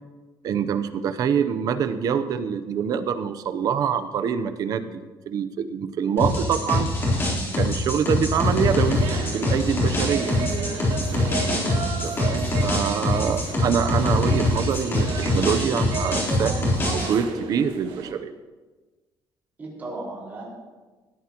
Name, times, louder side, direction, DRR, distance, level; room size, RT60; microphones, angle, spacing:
voice 1, 0.4-5.0 5.3-6.9 7.6-10.3 11.9-16.7 17.0-18.3, right 7 dB, 50° right, 10 dB, 0.8 m, -25 dB
voice 2, 6.0-6.8 10.1-10.4 19.6-20.4, right 2 dB, 20° right, -5 dB, 4.8 m, -38 dB
sound 1, 6.2-17.1, left 1 dB, 30° left, 3.6 m, -24 dB
sound 2, 8.4-18.1, right 5 dB, 90° right, 1.7 m, -34 dB
20.0 x 13.0 x 3.0 m, 1.3 s
cardioid pair, 175°, 8 cm